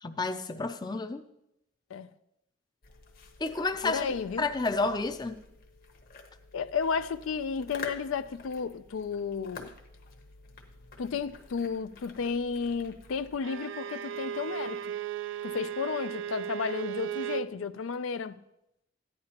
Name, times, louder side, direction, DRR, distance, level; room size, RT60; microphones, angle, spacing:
voice 1, 0.0-1.3 3.4-5.4, left 3 dB, 20° left, 0.5 m, -31 dB
sound 1, 2.8-13.4, left 3 dB, 50° left, 1.0 m, -49 dB
voice 2, 3.8-4.5 6.5-9.7 11.0-14.9 15.4-18.4, left 5 dB, 90° left, 0.4 m, -33 dB
Bowed string instrument, 13.4-17.5, right 10 dB, 65° right, 0.4 m, -36 dB
14.0 x 10.0 x 2.9 m
head